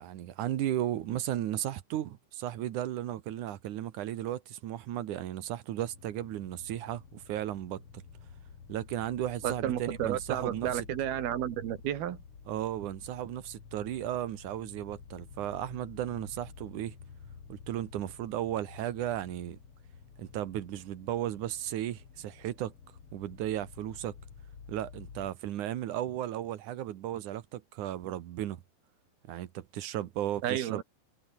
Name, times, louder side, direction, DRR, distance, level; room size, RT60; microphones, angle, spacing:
voice 1, 0.0-8.0 8.7-10.9 12.5-17.0 17.5-19.6 20.2-22.7 23.1-24.2 24.7-28.6 29.3-30.8, right 12 dB, 65° right, 2.4 m, -35 dB
sound 1, 5.9-25.3, left 6 dB, 40° left, 3.4 m, -51 dB
voice 2, 9.4-12.2 30.4-30.8, right 11 dB, 80° right, 3.7 m, -32 dB
omnidirectional pair, 4.4 m